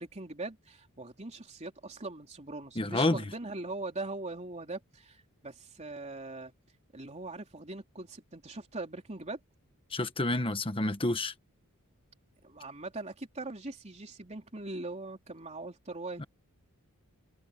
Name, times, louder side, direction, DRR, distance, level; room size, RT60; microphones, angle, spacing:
voice 1, 0.0-6.5 6.9-9.4 12.4-16.2, right 2 dB, 30° right, 3.4 m, -41 dB
voice 2, 2.8-3.2 9.9-11.3 16.2-16.3, left 2 dB, 25° left, 1.4 m, -29 dB
head